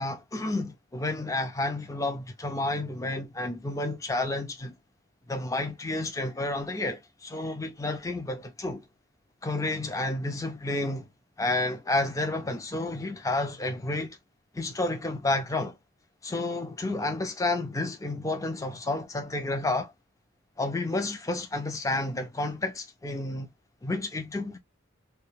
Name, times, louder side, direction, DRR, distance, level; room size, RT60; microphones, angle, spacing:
voice 1, 0.0-4.8 5.3-7.0 7.3-8.8 9.4-11.1 11.4-14.2 14.5-15.8 16.2-19.9 20.6-23.5 23.8-24.6, left 2 dB, 15° left, 0.3 m, -30 dB
2.2 x 2.2 x 3.0 m
head